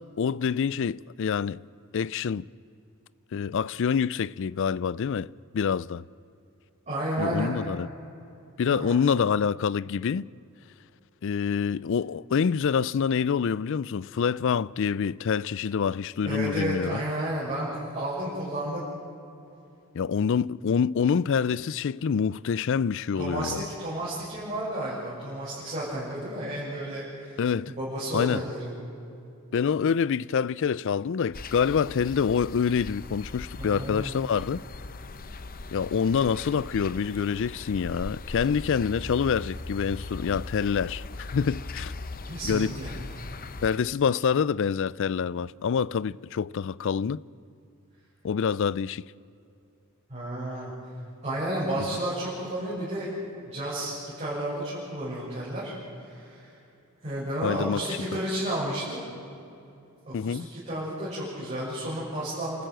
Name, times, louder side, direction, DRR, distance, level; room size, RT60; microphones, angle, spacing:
voice 1, 0.0-1.6 1.9-2.5 3.3-5.3 5.5-6.0 7.2-7.9 8.6-10.3 11.2-17.0 19.9-23.6 27.4-27.7 28.1-28.4 29.5-34.6 35.7-41.9 42.4-42.7 43.6-47.2 48.2-49.0 57.4-57.8 60.1-60.5, left 6 dB, 60° left, 0.4 m, -26 dB
voice 2, 6.9-7.6 8.7-8.9 16.2-18.8 23.1-28.7 33.6-34.2 42.2-42.9 50.1-50.7 51.2-55.7 56.0-56.5 57.0-59.0 60.1-62.6, right 1 dB, 30° right, 6.7 m, -32 dB
sound 1, 31.3-43.8, left 2 dB, 40° left, 0.8 m, -39 dB
29.5 x 13.5 x 7.8 m
head